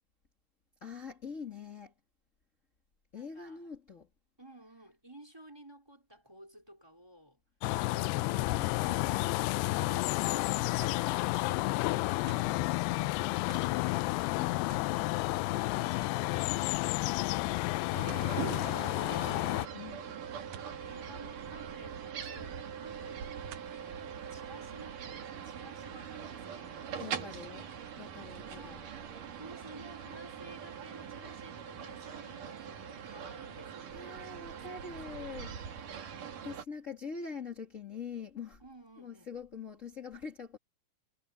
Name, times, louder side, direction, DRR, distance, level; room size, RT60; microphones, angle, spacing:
voice 1, 0.8-1.9 3.1-4.1 8.3-9.1 19.7-20.2 27.0-27.7 28.0-28.8 33.9-35.5 36.4-38.6 39.0-40.6, left 5 dB, 30° left, 1.3 m, -44 dB
voice 2, 3.1-3.6 4.4-7.4 7.9-8.6 9.7-10.2 10.6-14.3 14.9-20.3 20.8-25.0 25.4-27.6 28.5-28.9 29.4-35.6 38.6-39.3, right 1 dB, 5° right, 4.1 m, -55 dB
sound 1, 7.6-19.7, left 20 dB, 85° left, 2.3 m, -31 dB
sound 2, 10.8-11.1 12.3-12.6 13.5-13.8 14.7-15.0 15.4-15.5 16.0-16.2 18.1-18.3 20.5-20.8 22.2-22.3 23.5-23.8 24.5-24.6, right 12 dB, 75° right, 3.2 m, -51 dB
sound 3, 17.9-36.6, right 8 dB, 50° right, 3.5 m, -42 dB
omnidirectional pair, 5.1 m